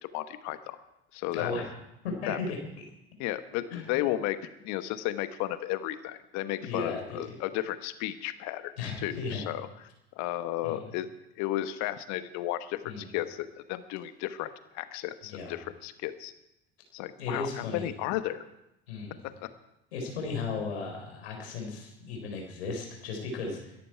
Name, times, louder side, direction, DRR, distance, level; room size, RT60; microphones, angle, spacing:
voice 1, 0.1-0.8 1.1-1.5 2.3-2.4 3.2-8.7 9.0-9.7 10.2-11.1 11.4-14.5 14.7-16.3 16.9-18.4 19.4-19.5, left 14 dB, 60° left, 11 dB, 1.3 m, -33 dB
voice 2, 1.3-1.6 2.0-2.6 3.7-3.9 6.6-7.2 8.8-9.4 10.6-10.8 12.8-13.1 15.3-15.6 17.2-17.9 18.9-19.2 19.9-23.8, left 4 dB, 80° left, 2 dB, 4.3 m, -35 dB
22.0 x 13.5 x 4.5 m, 0.88 s
hypercardioid pair, 65°, 32 cm